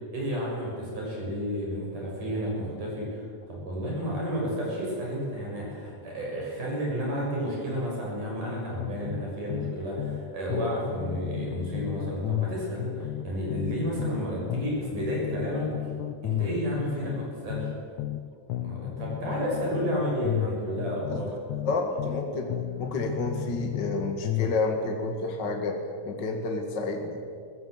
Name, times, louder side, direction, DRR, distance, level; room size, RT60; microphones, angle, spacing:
voice 1, 0.1-15.9 16.2-17.7 18.6-21.4, equal, 65° right, -3 dB, 8.1 m, -31 dB
sound 1, 8.8-10.2 10.5-14.2 14.5-18.2 18.5-22.2 22.5-24.6, left 14 dB, 70° left, 2.2 m, -33 dB
voice 2, 21.7-25.8 26.0-27.2, left 3 dB, 35° left, 3 dB, 2.2 m, -30 dB
23.0 x 21.0 x 7.9 m, 2.2 s
omnidirectional pair, 3.9 m